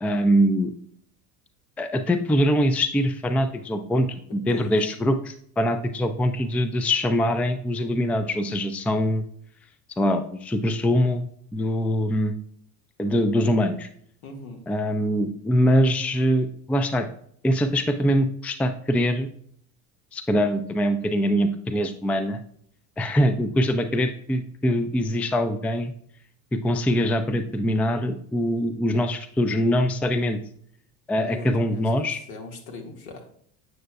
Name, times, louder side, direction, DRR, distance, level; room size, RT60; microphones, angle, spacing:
voice 1, 0.0-0.7 1.8-4.1 4.3-9.2 10.0-11.3 11.5-12.3 13.0-13.9 14.7-17.1 17.4-19.3 20.1-22.4 23.0-25.9 26.5-30.4 31.1-32.2, equal, 5° left, 10 dB, 0.4 m, -23 dB
voice 2, 14.2-14.6 31.2-33.3, left 3 dB, 70° left, 3 dB, 1.8 m, -40 dB
7.8 x 6.6 x 2.3 m, 0.64 s
hypercardioid pair, 75°, 43 cm